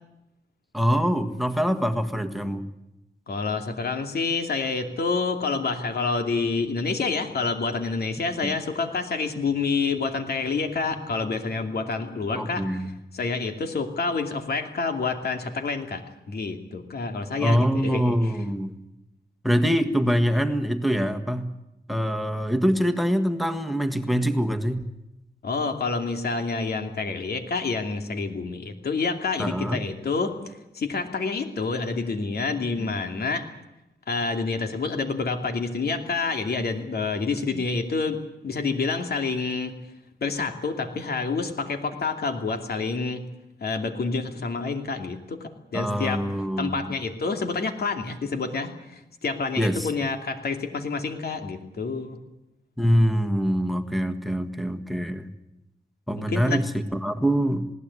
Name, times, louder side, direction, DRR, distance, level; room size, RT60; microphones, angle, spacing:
voice 1, 0.7-2.7 8.4-8.5 12.4-12.9 17.4-18.7 19.4-21.5 21.9-24.8 29.4-29.8 32.8-32.9 37.5-37.6 45.7-46.9 49.6-49.9 52.8-55.3 56.1-56.6 56.9-57.7, equal, ahead, 8 dB, 1.6 m, -24 dB
voice 2, 3.3-12.6 13.1-18.3 25.4-33.4 34.1-39.8 40.2-43.3 43.6-46.2 46.6-52.2 56.2-56.6, left 4 dB, 70° left, 5 dB, 2.6 m, -28 dB
20.5 x 17.5 x 9.7 m, 0.91 s
wide cardioid pair, 125°, 17 cm